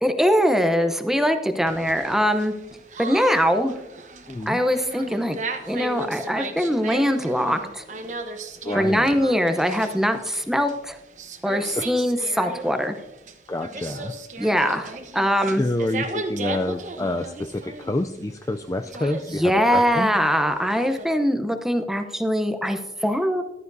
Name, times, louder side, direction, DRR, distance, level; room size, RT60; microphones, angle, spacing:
voice 1, 0.0-2.5 3.0-3.7 4.5-5.4 5.7-7.8 8.7-11.0 11.4-13.0 14.4-15.6 19.3-23.4, equal, ahead, 7 dB, 0.7 m, -22 dB
sound 1, 1.7-21.1, right 3 dB, 45° right, 1.0 m, -36 dB
voice 2, 4.3-4.6 8.6-9.0 11.7-11.9 13.5-14.1 15.6-20.2, left 1 dB, 20° left, 6 dB, 0.3 m, -28 dB
14.5 x 12.5 x 2.7 m, 0.93 s
head